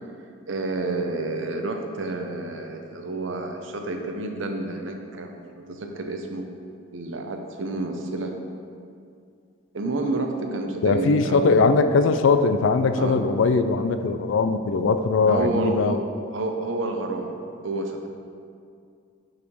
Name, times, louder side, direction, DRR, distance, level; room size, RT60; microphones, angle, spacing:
voice 1, 0.5-6.5 6.9-8.3 9.7-11.7 13.0-13.2 15.3-16.0 16.3-17.4 17.6-18.1, right 2 dB, 75° right, 4 dB, 0.7 m, -29 dB
voice 2, 10.8-15.9, left 4 dB, 75° left, 10 dB, 0.4 m, -20 dB
5.6 x 4.1 x 5.3 m, 2.3 s
head